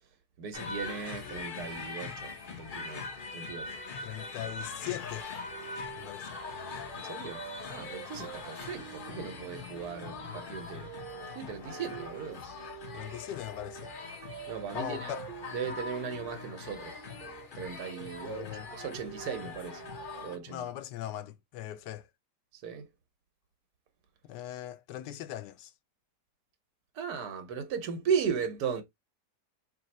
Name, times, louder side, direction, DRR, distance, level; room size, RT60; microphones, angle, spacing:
voice 1, 0.4-3.1 3.3-3.7 6.9-7.4 7.7-10.9 11.3-12.4 14.5-15.1 15.5-16.9 17.5-19.8 20.2-20.6 22.6-22.9 27.0-28.8, right 6 dB, 65° right, 1.4 m, -36 dB
sound 1, 0.5-20.4, left 4 dB, 50° left, 0.6 m, -42 dB
voice 2, 4.0-5.3 5.9-6.4 12.9-13.9 14.7-15.2 18.3-18.7 20.5-22.1 24.2-25.7, left 12 dB, 85° left, 1.2 m, -40 dB
sound 2, 5.2-20.6, right 15 dB, 90° right, 1.3 m, -49 dB
3.2 x 2.9 x 4.1 m
omnidirectional pair, 1.9 m